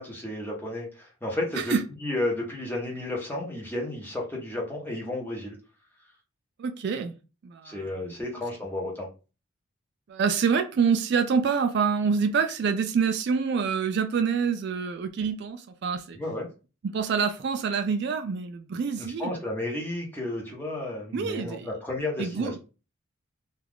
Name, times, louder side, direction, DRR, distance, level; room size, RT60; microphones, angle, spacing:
voice 1, 0.0-1.7 2.0-5.6 7.6-9.1 16.1-16.5 19.0-22.6, left 1 dB, 10° left, 0.7 m, -32 dB
voice 2, 6.6-7.1 7.4-8.1 10.1-16.2 16.8-19.4 21.1-21.7 22.2-22.6, right 6 dB, 55° right, 0.3 m, -26 dB
2.3 x 2.3 x 3.4 m
head